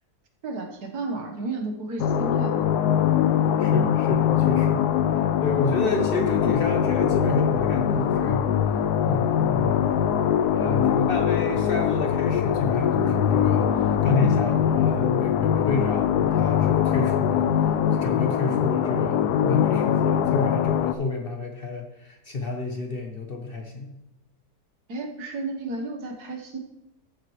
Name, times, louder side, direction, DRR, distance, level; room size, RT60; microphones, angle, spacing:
voice 1, 0.4-2.6 6.0-6.4 24.9-26.6, right 2 dB, 75° right, 2 dB, 1.8 m, -33 dB
sound 1, 2.0-20.9, left 9 dB, 80° left, 1.1 m, -22 dB
voice 2, 3.2-4.9 5.4-8.5 9.0-9.7 10.4-17.5 17.9-24.0, left 3 dB, 45° left, 3 dB, 0.9 m, -30 dB
14.0 x 7.4 x 3.1 m, 0.90 s
omnidirectional pair, 1.7 m